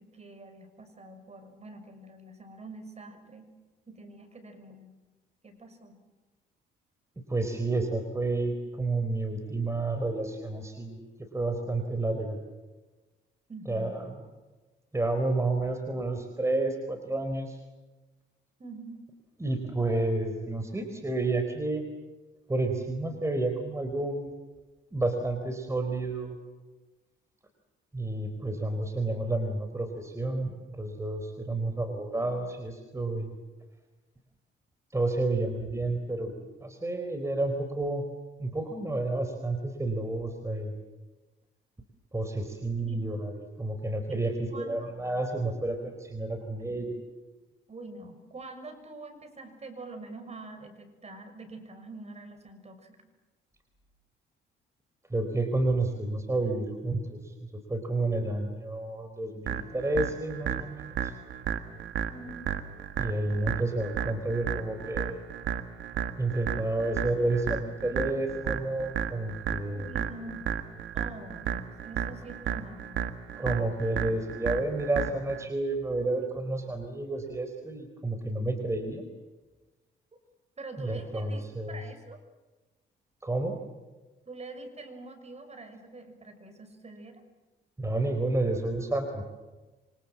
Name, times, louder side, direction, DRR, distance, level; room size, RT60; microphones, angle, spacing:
voice 1, 0.0-3.5 3.9-4.9 5.4-6.0 13.5-14.0 18.6-19.1 42.8-43.0 44.1-44.9 47.7-53.0 62.1-62.5 69.7-70.5 70.9-73.0 73.3-73.6 80.6-82.2 84.3-87.2, right 2 dB, 35° right, 7 dB, 6.4 m, -45 dB
voice 2, 7.3-11.1 11.3-12.4 13.7-14.0 14.9-17.6 19.4-21.9 22.5-24.3 24.9-26.4 27.9-33.3 34.9-36.3 36.6-38.0 38.4-40.7 42.1-47.0 55.1-57.3 57.7-61.1 63.0-65.2 66.2-69.9 73.4-79.0 80.8-81.8 83.2-83.6 87.8-89.2, right 2 dB, 15° right, 5 dB, 4.4 m, -30 dB
sound 1, 59.5-75.4, right 8 dB, 75° right, 1.7 m, -34 dB
27.5 x 25.5 x 7.5 m, 1.2 s
cardioid pair, 90°, 20 cm